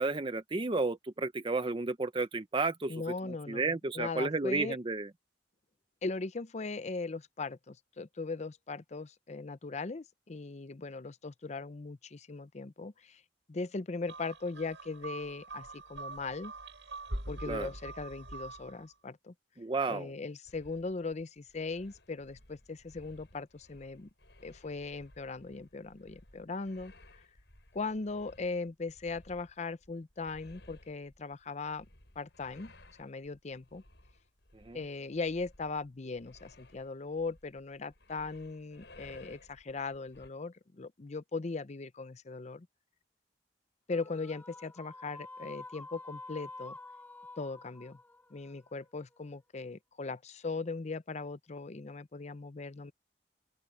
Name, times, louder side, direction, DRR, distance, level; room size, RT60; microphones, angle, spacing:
voice 1, 0.0-5.1 17.5-17.7 19.6-20.1 34.5-34.8, right 3 dB, 30° right, 0.7 m, -32 dB
voice 2, 2.9-4.8 6.0-13.2 13.5-16.5 17.3-19.3 19.9-24.1 24.4-26.9 27.7-31.9 32.2-32.7 33.0-33.8 34.7-42.7 43.9-46.8 47.4-48.0 48.3-52.9, left 3 dB, 40° left, 0.6 m, -39 dB
sound 1, 14.1-18.8, right 2 dB, 85° right, 7.2 m, -43 dB
sound 2, 20.4-40.3, left 1 dB, 75° left, 5.6 m, -59 dB
sound 3, 43.9-49.3, left 2 dB, 10° left, 2.0 m, -49 dB
open air
head